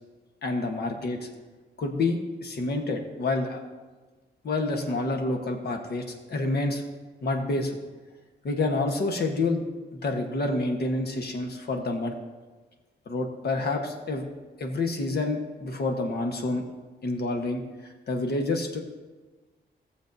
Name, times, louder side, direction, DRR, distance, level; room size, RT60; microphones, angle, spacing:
voice 1, 0.4-1.3 1.8-3.6 4.4-6.8 7.2-7.8 8.4-9.6 9.9-12.1 13.1-14.3 14.6-16.6 17.0-17.6 18.1-18.8, left 2 dB, 65° left, 3 dB, 1.2 m, -28 dB
17.0 x 7.1 x 2.7 m, 1.3 s
wide cardioid pair, 160°, 18 cm